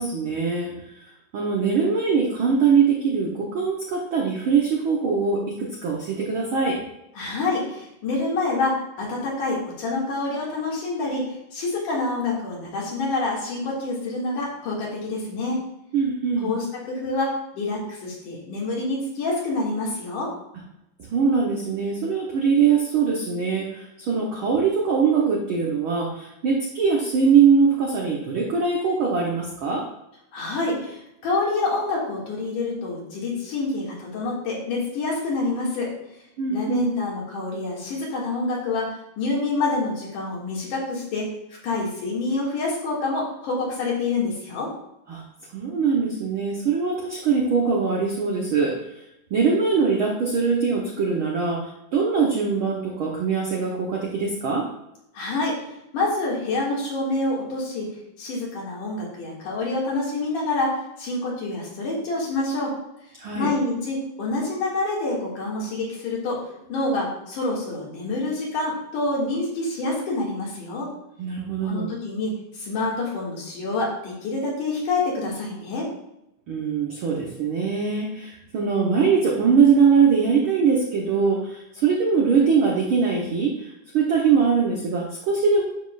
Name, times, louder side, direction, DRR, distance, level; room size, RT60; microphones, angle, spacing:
voice 1, 0.0-6.8 15.9-16.5 21.1-29.9 36.4-37.0 45.1-45.2 45.5-49.0 49.3-54.7 63.2-63.5 71.2-71.9 76.5-85.6, right 5 dB, 70° right, -1 dB, 1.2 m, -22 dB
voice 2, 7.2-15.6 16.4-20.3 30.3-35.9 36.5-41.3 41.6-44.7 55.1-55.6 55.9-57.9 58.2-62.8 63.4-66.4 66.7-70.9 71.6-75.9, left 2 dB, 70° left, -4 dB, 3.7 m, -27 dB
9.6 x 7.3 x 2.5 m, 0.84 s
omnidirectional pair, 3.7 m